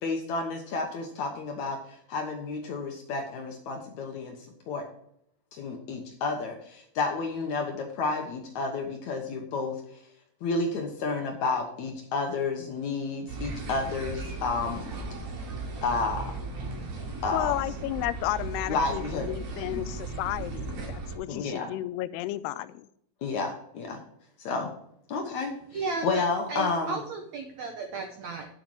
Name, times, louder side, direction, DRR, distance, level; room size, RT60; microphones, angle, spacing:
voice 1, 0.0-4.4 4.7-4.8 5.5-9.8 10.4-14.8 15.8-16.3 17.2-17.5 18.7-19.3 19.7-19.8 21.3-21.7 23.2-24.0 24.4-24.7 25.1-25.5 26.0-27.0, left 4 dB, 65° left, 3 dB, 1.9 m, -31 dB
sound 1, 13.3-21.2, right 3 dB, 60° right, 3.8 m, -36 dB
voice 2, 17.3-22.9, left 15 dB, 90° left, 15 dB, 2.6 m, -32 dB
voice 3, 25.7-28.5, right 4 dB, 80° right, 4 dB, 1.6 m, -34 dB
9.6 x 8.0 x 4.7 m, 0.71 s
omnidirectional pair, 4.6 m